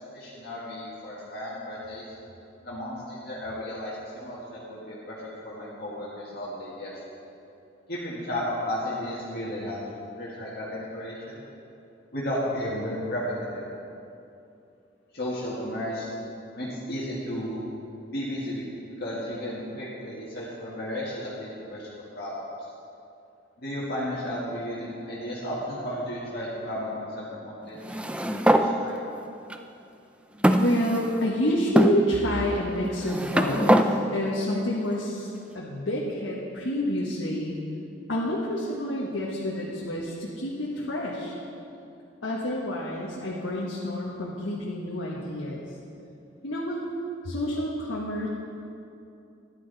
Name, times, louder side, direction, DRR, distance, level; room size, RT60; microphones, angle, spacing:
voice 1, 0.1-2.0 2.6-7.0 7.9-9.8 10.1-11.4 12.1-13.7 15.1-16.1 16.5-17.6 18.1-18.6 19.0-22.4 23.6-29.0, equal, 55° left, -7 dB, 1.9 m, -34 dB
sound 1, 27.8-28.7 29.5-29.6 30.4-31.3 31.8-32.0 32.8-33.9, right 1 dB, 5° right, 0.4 m, -22 dB
voice 2, 30.6-37.6 38.1-41.3 42.2-45.6 46.4-46.8 47.2-48.3, left 1 dB, 80° left, -4 dB, 1.4 m, -28 dB
13.5 x 11.0 x 4.1 m, 2.7 s
head